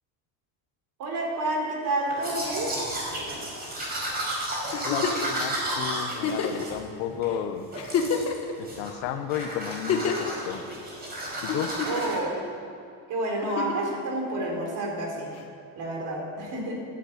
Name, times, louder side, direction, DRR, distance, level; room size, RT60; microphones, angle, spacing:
voice 1, 1.0-2.7 11.9-12.5 13.1-15.3 15.7-16.7, right 1 dB, 45° right, 0 dB, 4.4 m, -29 dB
Domestic sounds home sounds, 2.1-7.3 7.7-8.4 8.6-9.0 9.3-12.2, right 1 dB, 20° right, 5.0 m, -33 dB
Giggle, 4.7-5.3 6.2-6.7 7.3-7.4 7.7-8.5 9.7-10.3 11.5-12.1 13.4-13.9 15.4-15.5, left 6 dB, 35° left, 1.6 m, -28 dB
voice 2, 4.8-7.7 8.6-10.6 11.4-11.7, left 9 dB, 85° left, 8 dB, 1.4 m, -33 dB
14.0 x 11.5 x 8.9 m, 2.5 s
cardioid pair, 160°, 41 cm